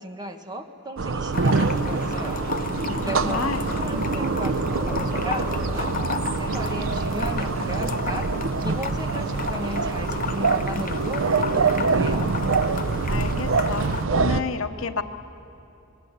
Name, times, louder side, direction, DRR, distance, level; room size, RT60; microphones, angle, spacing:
voice 1, 0.0-2.4 3.0-12.2, right 1 dB, 20° right, 5 dB, 1.3 m, -36 dB
sound 1, 1.0-14.4, right 4 dB, 75° right, 0.7 m, -25 dB
sound 2, 1.3-14.1, left 4 dB, 40° left, 0.6 m, -33 dB
voice 2, 3.1-3.7 13.1-13.9 14.1-15.0, left 5 dB, 80° left, 9 dB, 1.0 m, -30 dB
sound 3, 3.6-5.8, left 1 dB, 10° left, 7.0 m, -37 dB
26.5 x 21.0 x 8.1 m, 2.7 s
head